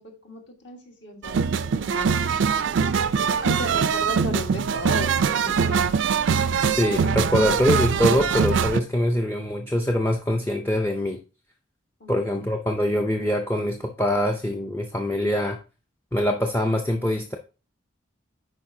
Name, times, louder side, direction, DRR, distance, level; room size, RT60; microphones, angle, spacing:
voice 1, 0.0-2.2 3.2-5.8 12.0-12.4, equal, 60° left, 3 dB, 1.5 m, -36 dB
sound 1, 1.2-8.8, right 6 dB, 65° right, 0.4 m, -22 dB
voice 2, 6.6-11.2 12.1-15.6 16.1-17.4, left 1 dB, 10° left, 3 dB, 0.4 m, -24 dB
10.5 x 4.4 x 2.7 m, 0.33 s
head